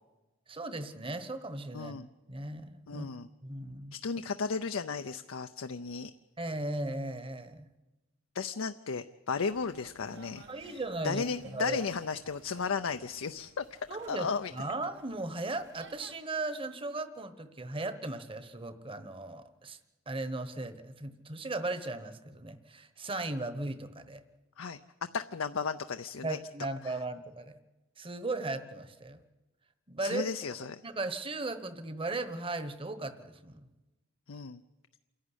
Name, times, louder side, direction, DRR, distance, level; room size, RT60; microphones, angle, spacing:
voice 1, 0.5-1.9 2.3-3.1 3.4-3.9 6.4-7.7 10.5-11.2 11.5-11.8 13.9-19.8 20.1-24.2 26.2-27.6 28.0-29.2 29.9-33.6, right 2 dB, 25° right, 12 dB, 1.2 m, -37 dB
voice 2, 1.7-2.1 2.9-3.3 3.9-6.1 8.3-13.6 14.1-14.5 24.6-24.8 25.1-26.4 30.0-30.8 34.3-34.6, left 5 dB, 75° left, 8 dB, 0.6 m, -34 dB
sound 1, 9.5-16.2, right 4 dB, 60° right, 1.3 m, -57 dB
28.0 x 11.5 x 10.0 m, 1.1 s
head